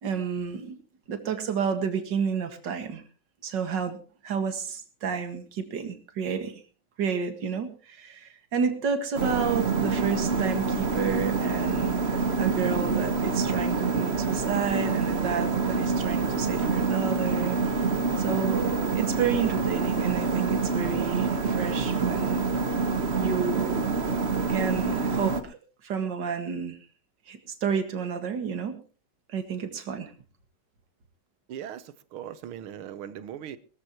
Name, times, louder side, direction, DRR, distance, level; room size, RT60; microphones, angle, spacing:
voice 1, 0.0-0.8 1.1-3.0 3.4-4.0 4.2-6.6 7.0-12.0 12.4-17.8 18.2-22.5 23.2-23.9 24.5-25.6 25.8-26.8 27.3-28.8 29.3-30.1, right 6 dB, 55° right, 2.4 m, -30 dB
sound 1, 9.2-25.4, right 4 dB, 40° right, 1.1 m, -27 dB
voice 2, 31.5-33.6, right 10 dB, 85° right, 1.8 m, -39 dB
21.5 x 14.5 x 3.0 m
omnidirectional pair, 2.3 m